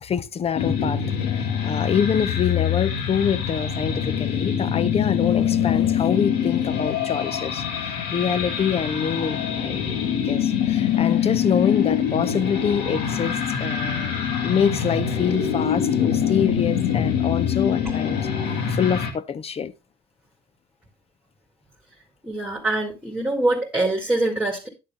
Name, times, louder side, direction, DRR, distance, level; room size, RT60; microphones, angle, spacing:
voice 1, 0.0-1.1 1.3-9.9 10.2-19.7, left 7 dB, 35° left, 0.7 m, -26 dB
sound 1, 0.6-19.1, left 8 dB, 90° left, 1.8 m, -24 dB
voice 2, 22.2-24.7, right 2 dB, 5° right, 2.0 m, -24 dB
10.0 x 6.6 x 3.5 m
cardioid pair, 110°, 17 cm